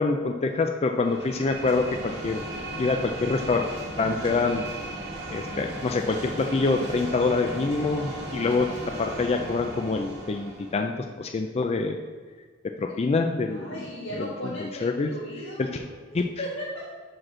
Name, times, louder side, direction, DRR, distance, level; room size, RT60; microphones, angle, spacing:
voice 1, 0.0-2.4 2.8-3.6 4.0-4.6 5.3-8.7 9.0-10.9 11.2-12.0 12.8-13.7 14.2-15.1 15.6-15.8 16.1-16.2, left 3 dB, 30° left, 4 dB, 0.4 m, -26 dB
sound 1, 1.0-10.8, right 1 dB, 55° right, 2.2 m, -36 dB
voice 2, 13.5-16.9, equal, 70° left, -10 dB, 1.8 m, -37 dB
5.8 x 5.1 x 6.1 m, 1.5 s
head